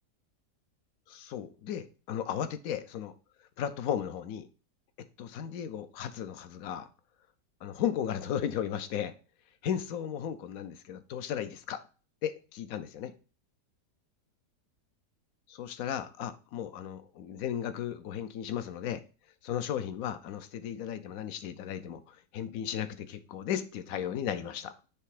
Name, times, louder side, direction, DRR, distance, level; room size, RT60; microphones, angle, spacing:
voice 1, 1.1-3.1 3.6-4.5 5.2-6.9 7.6-9.1 9.6-11.8 12.2-13.1 15.5-19.0 19.4-24.7, left 9 dB, 65° left, 11 dB, 1.0 m, -35 dB
6.7 x 3.4 x 4.8 m, 0.35 s
omnidirectional pair, 1.8 m